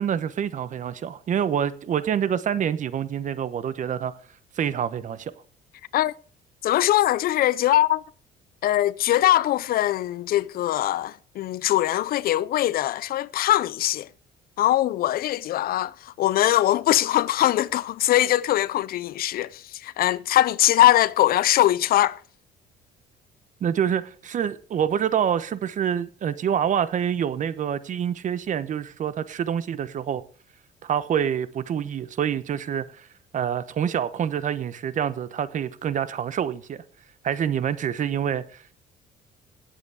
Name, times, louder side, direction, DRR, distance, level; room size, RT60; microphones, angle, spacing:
voice 1, 0.0-4.1 4.6-5.3 23.6-30.2 30.8-33.1 33.3-36.8 37.2-38.7, right 8 dB, 50° right, 1.0 m, -26 dB
voice 2, 6.6-8.0 8.6-14.1 14.6-22.2, left 14 dB, 60° left, 0.5 m, -22 dB
17.0 x 8.2 x 3.6 m
cardioid pair, 110°, 17 cm